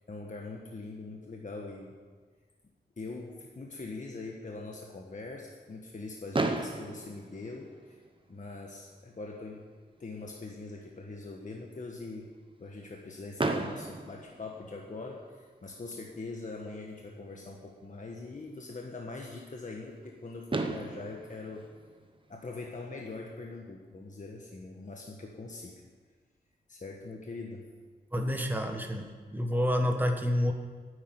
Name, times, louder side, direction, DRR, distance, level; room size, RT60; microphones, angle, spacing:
voice 1, 0.0-2.0 3.0-8.0 8.3-9.6 10.0-12.3 12.6-21.6 22.3-25.7 26.7-27.6, left 3 dB, 45° left, 0 dB, 1.4 m, -42 dB
Fireworks, 6.3-8.4 9.2-9.3 9.5-9.7 10.0-10.1 13.4-15.2 16.9-17.0 20.0-20.1 20.5-22.8, right 2 dB, 30° right, 1.0 m, -35 dB
voice 2, 28.1-30.5, left 1 dB, 10° right, 3 dB, 1.5 m, -29 dB
9.9 x 8.7 x 9.2 m, 1.5 s
wide cardioid pair, 105°, 18 cm